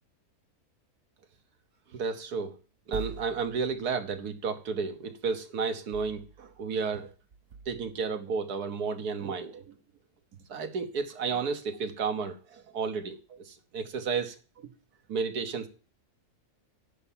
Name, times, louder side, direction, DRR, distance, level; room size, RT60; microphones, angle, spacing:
voice 1, 1.9-2.6 2.9-7.1 7.6-9.8 10.5-14.7 15.1-15.7, right 5 dB, 90° right, 7 dB, 1.7 m, -32 dB
sound 1, 2.9-4.1 5.9-6.8 7.3-7.9, right 5 dB, 60° right, 1.1 m, -44 dB
10.5 x 5.7 x 7.2 m, 0.38 s
omnidirectional pair, 1.6 m